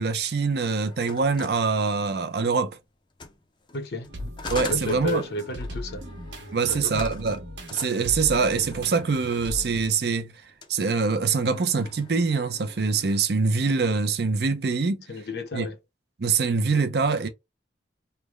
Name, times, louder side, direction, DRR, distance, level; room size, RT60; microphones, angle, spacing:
voice 1, 0.0-2.8 4.5-5.2 6.5-7.4 7.7-10.4 10.7-15.0 15.5-15.7 16.2-17.3, right 4 dB, 60° right, 0.5 m, -24 dB
sound 1, 0.9-2.5 3.1-9.7 10.5-10.9 11.2-13.2, left 4 dB, 25° left, 0.5 m, -43 dB
voice 2, 3.7-4.1 4.7-6.0 6.7-7.2 15.1-15.8, left 2 dB, 60° left, 0.7 m, -32 dB
sound 2, 4.1-9.9, left 1 dB, 85° right, 1.1 m, -38 dB
3.3 x 2.1 x 3.3 m
head